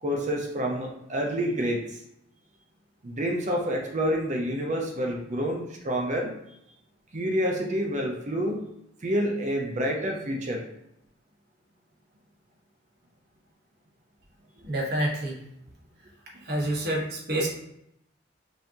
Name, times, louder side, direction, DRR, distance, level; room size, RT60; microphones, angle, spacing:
voice 1, 0.0-2.0 3.0-6.6 7.1-8.7 9.0-10.7, equal, 40° right, 0 dB, 0.6 m, -28 dB
voice 2, 14.6-15.3 16.5-17.5, right 1 dB, 55° right, -3 dB, 1.3 m, -27 dB
5.5 x 2.7 x 2.9 m, 0.77 s
head